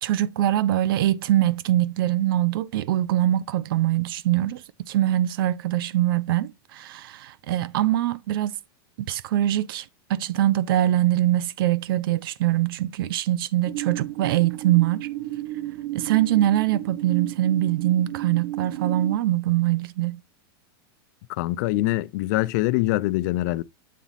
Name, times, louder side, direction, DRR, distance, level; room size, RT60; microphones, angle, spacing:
voice 1, 0.0-8.6 9.1-15.1 15.9-20.2, right 13 dB, 70° right, 0.5 m, -23 dB
sound 1, 13.6-19.2, right 16 dB, 45° right, 0.8 m, -33 dB
voice 2, 21.3-23.6, left 18 dB, 50° left, 0.4 m, -24 dB
7.5 x 4.0 x 4.0 m
supercardioid pair, 165°, 12 cm